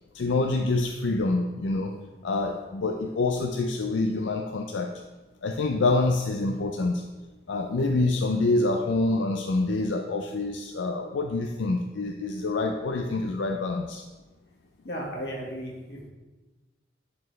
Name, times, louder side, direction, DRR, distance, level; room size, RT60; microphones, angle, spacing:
voice 1, 0.1-1.9 2.2-4.9 5.4-7.0 7.5-14.0, left 2 dB, 85° left, 2 dB, 0.5 m, -26 dB
voice 2, 14.8-16.1, equal, 60° left, -2 dB, 1.7 m, -35 dB
11.0 x 4.3 x 3.2 m, 1.2 s
head